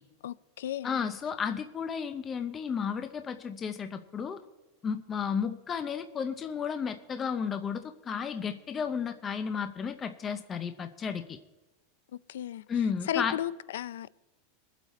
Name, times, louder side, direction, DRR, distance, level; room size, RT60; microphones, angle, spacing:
voice 1, 0.2-1.0 12.3-12.6 13.1-14.1, left 11 dB, 90° left, 0.4 m, -34 dB
voice 2, 0.8-4.4 4.8-11.4 12.7-13.4, left 6 dB, 15° left, 0.5 m, -33 dB
22.0 x 8.1 x 4.2 m
supercardioid pair, 175°, 0 cm